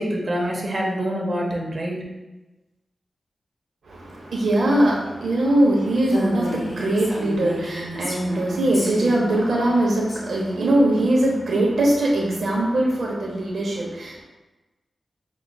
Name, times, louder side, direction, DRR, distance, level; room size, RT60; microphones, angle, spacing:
voice 1, 0.0-2.0, equal, 50° right, -3 dB, 0.6 m, -26 dB
voice 2, 3.8-14.2, right 1 dB, 85° right, -2 dB, 0.7 m, -21 dB
Female speech woman speaking, 6.0-10.2, equal, 35° left, 1.4 m, -32 dB
5.8 x 2.3 x 2.2 m, 1.1 s
wide cardioid pair, 95°, 0 cm